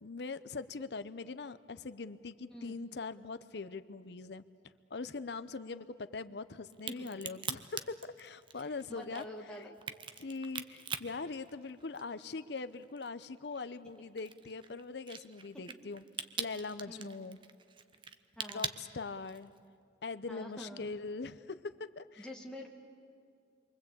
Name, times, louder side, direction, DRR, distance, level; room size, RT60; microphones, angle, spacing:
voice 1, 0.0-4.4 4.9-9.7 10.2-17.4 18.5-19.5 20.0-22.3, left 4 dB, 65° left, 13 dB, 0.7 m, -42 dB
voice 2, 2.5-2.8 6.9-7.0 7.3-7.4 8.6-9.7 16.9-17.2 18.4-18.7 20.3-20.9 22.2-22.7, equal, 5° left, -1 dB, 2.1 m, -47 dB
Crack, 6.7-12.2 12.6-19.6, right 6 dB, 25° right, 0.8 m, -42 dB
28.5 x 23.5 x 8.6 m, 2.3 s
head